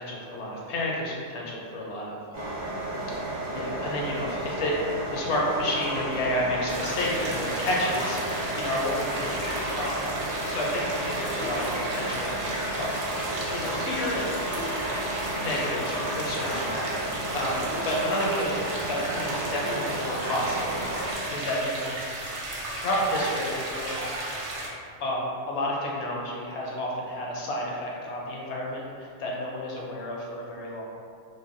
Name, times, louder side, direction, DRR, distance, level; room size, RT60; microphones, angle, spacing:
voice 1, 0.0-2.6 3.5-8.2 8.5-9.4 9.8-10.0 10.5-12.3 12.8-13.3 13.5-14.4 15.3-20.8 21.3-21.9 22.7-24.0 25.0-30.8, left 1 dB, 70° left, -3 dB, 0.8 m, -31 dB
sound 1, 2.3-21.2, right 1 dB, 45° right, 0.8 m, -33 dB
sound 2, 5.5-21.1, left 1 dB, 50° left, 0.4 m, -39 dB
sound 3, 6.7-24.7, right 1 dB, 70° right, 0.8 m, -34 dB
3.3 x 2.1 x 2.5 m, 2.3 s
omnidirectional pair, 1.3 m